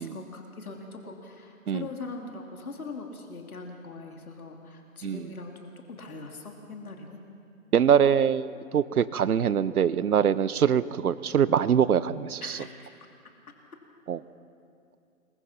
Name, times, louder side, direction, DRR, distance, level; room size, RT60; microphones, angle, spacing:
voice 1, 0.0-7.2 12.4-12.9, left 3 dB, 75° left, 2 dB, 2.8 m, -41 dB
voice 2, 7.7-12.6 14.1-14.2, right 8 dB, 80° right, 17 dB, 0.9 m, -23 dB
26.5 x 22.5 x 5.8 m, 2.4 s
hypercardioid pair, 180°, 43 cm